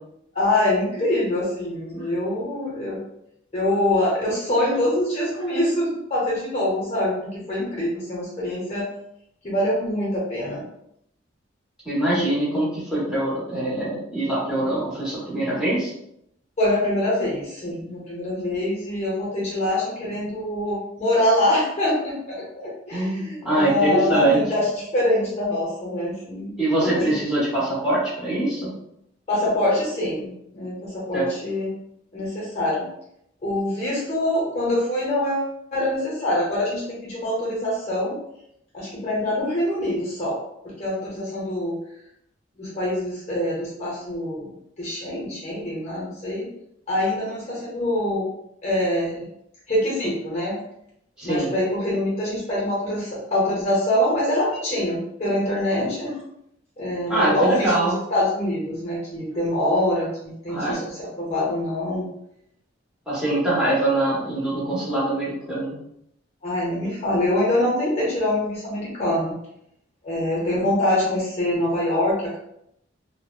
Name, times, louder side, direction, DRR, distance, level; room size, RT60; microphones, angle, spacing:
voice 1, 0.3-3.0 3.5-8.9 9.4-10.6 16.6-27.0 29.3-31.7 32.1-32.9 33.4-38.2 38.7-40.3 40.8-41.7 42.6-44.5 44.8-46.5 46.9-48.2 48.6-49.3 49.7-50.6 51.2-56.2 56.8-62.1 66.4-69.4 70.0-72.4, left 1 dB, 35° left, -5 dB, 0.7 m, -24 dB
voice 2, 11.8-15.9 22.9-24.4 26.6-28.7 31.1-31.3 51.2-51.5 57.1-57.9 60.5-60.9 63.1-65.8, right 1 dB, 5° right, -9 dB, 0.9 m, -23 dB
2.7 x 2.0 x 2.2 m, 0.77 s
head